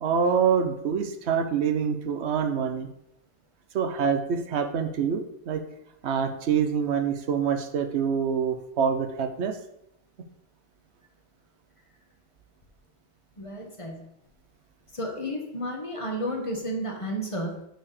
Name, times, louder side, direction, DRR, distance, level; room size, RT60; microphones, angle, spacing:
voice 1, 0.0-2.9 3.7-5.6 6.0-9.6, right 7 dB, 85° right, 7 dB, 1.1 m, -26 dB
voice 2, 13.4-14.0 14.9-17.7, equal, 30° left, 1 dB, 1.6 m, -32 dB
6.2 x 4.8 x 6.7 m, 0.79 s
omnidirectional pair, 1.1 m